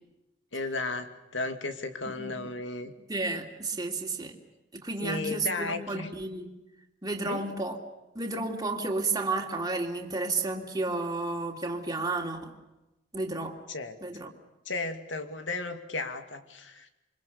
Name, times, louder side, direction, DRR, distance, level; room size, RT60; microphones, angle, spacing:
voice 1, 0.5-2.9 5.0-6.1 7.2-7.5 13.7-14.0 14.7-16.9, left 3 dB, 85° left, 8 dB, 2.4 m, -34 dB
voice 2, 2.0-2.5 2.8-4.3 4.7-6.5 7.0-7.8 8.1-12.5 13.1-13.6 14.0-14.3, right 3 dB, 20° right, 0 dB, 2.9 m, -32 dB
28.0 x 24.5 x 6.9 m, 0.98 s
head